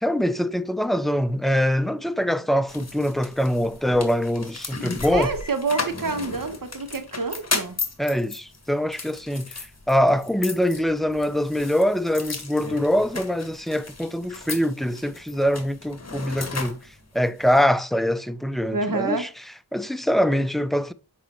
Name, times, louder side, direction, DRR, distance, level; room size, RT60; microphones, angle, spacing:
voice 1, 0.0-5.3 8.0-16.8 17.1-19.3 19.7-20.9, equal, ahead, 0.5 m, -23 dB
sound 1, 2.7-17.6, left 4 dB, 40° left, 1.7 m, -35 dB
voice 2, 5.1-7.8 18.7-19.3, right 3 dB, 60° right, 1.3 m, -27 dB
7.6 x 5.5 x 3.1 m
cardioid pair, 45°, 38 cm